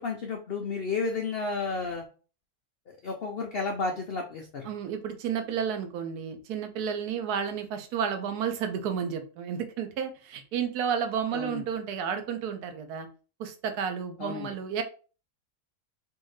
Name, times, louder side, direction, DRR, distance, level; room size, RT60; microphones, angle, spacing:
voice 1, 0.0-2.0 2.9-4.7 11.3-11.6 14.2-14.5, left 4 dB, 80° left, 2 dB, 0.5 m, -32 dB
voice 2, 4.6-13.1 13.4-14.8, right 7 dB, 85° right, 7 dB, 1.2 m, -31 dB
3.5 x 2.6 x 3.1 m, 0.37 s
omnidirectional pair, 1.6 m